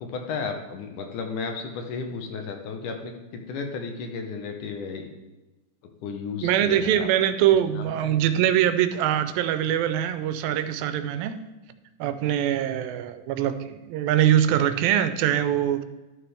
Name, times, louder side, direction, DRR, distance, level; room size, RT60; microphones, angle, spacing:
voice 1, 0.0-5.1 6.0-7.1 7.8-8.2, left 5 dB, 75° left, 4 dB, 2.2 m, -34 dB
voice 2, 6.4-11.4 12.0-15.8, right 11 dB, 90° right, 11 dB, 2.3 m, -23 dB
12.5 x 5.9 x 3.4 m, 1.1 s
omnidirectional pair, 4.0 m